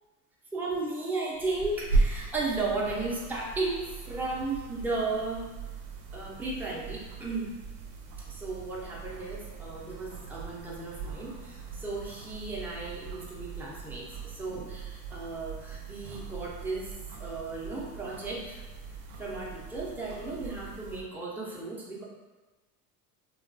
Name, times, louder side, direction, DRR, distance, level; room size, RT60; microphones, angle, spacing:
voice 1, 0.5-5.4 6.1-7.5 8.3-16.9 17.2-18.6 19.2-22.0, right 3 dB, 5° right, -4 dB, 0.5 m, -35 dB
sound 1, 1.3-21.0, right 3 dB, 75° right, 0.6 m, -38 dB
3.0 x 2.3 x 2.5 m, 1.2 s
hypercardioid pair, 90°, 46 cm